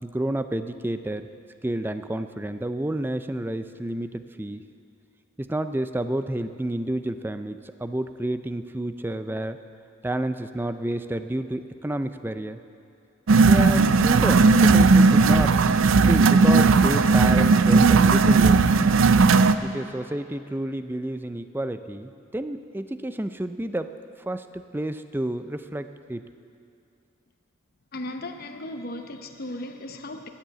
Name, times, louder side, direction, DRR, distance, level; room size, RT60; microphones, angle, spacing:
voice 1, 0.0-1.3 1.6-4.6 5.4-9.6 10.0-12.6 13.5-15.5 16.0-18.6 19.6-23.9 24.3-26.2, right 1 dB, 10° right, 10 dB, 0.4 m, -30 dB
sound 1, 13.3-19.6, right 4 dB, 75° right, 0.5 m, -16 dB
voice 2, 27.9-30.3, left 1 dB, 50° left, 4 dB, 0.8 m, -36 dB
14.0 x 10.5 x 8.2 m, 2.5 s
head